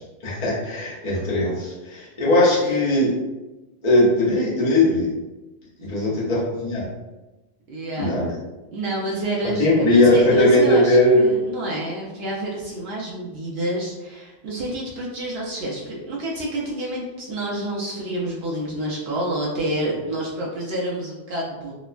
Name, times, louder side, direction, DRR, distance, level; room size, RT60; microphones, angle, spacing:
voice 1, 0.0-3.1 3.8-5.1 5.8-6.9 8.0-8.3 9.6-11.3, left 1 dB, 40° left, -7 dB, 0.8 m, -19 dB
voice 2, 5.8-6.3 7.7-8.2 8.7-21.7, right 1 dB, 65° right, -4 dB, 0.7 m, -28 dB
2.9 x 2.1 x 2.3 m, 1.1 s
omnidirectional pair, 1.2 m